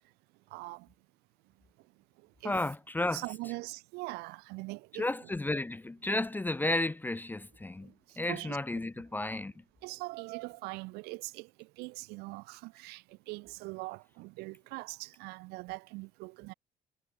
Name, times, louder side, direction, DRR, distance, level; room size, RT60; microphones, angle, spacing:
voice 1, 0.5-0.9 2.4-2.5 3.1-5.1 7.8-7.9 8.2-8.9 9.8-16.5, right 24 dB, 85° right, 4.1 m, -42 dB
voice 2, 2.4-3.2 4.9-9.5, left 2 dB, 10° left, 0.6 m, -33 dB
supercardioid pair, 90°, 16 cm